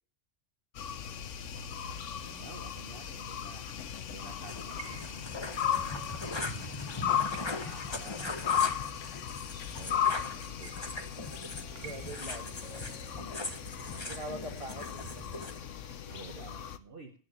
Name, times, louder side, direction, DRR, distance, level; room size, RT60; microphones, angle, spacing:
sound 1, 0.7-16.8, left 9 dB, 85° left, 1.2 m, -36 dB
voice 1, 1.0-1.3 2.2-3.6 4.1-9.2 9.7-11.2 13.6-14.4 16.1-17.1, right 4 dB, 50° right, 2 dB, 1.5 m, -52 dB
sound 2, 3.4-13.2, right 8 dB, 85° right, 1.2 m, -55 dB
sound 3, 4.4-15.6, left 2 dB, 25° left, 1.2 m, -40 dB
voice 2, 11.7-13.0 14.1-16.2 16.5-16.7, right 1 dB, 30° right, 5 dB, 2.2 m, -45 dB
17.5 x 6.3 x 6.7 m, 0.42 s
omnidirectional pair, 1.2 m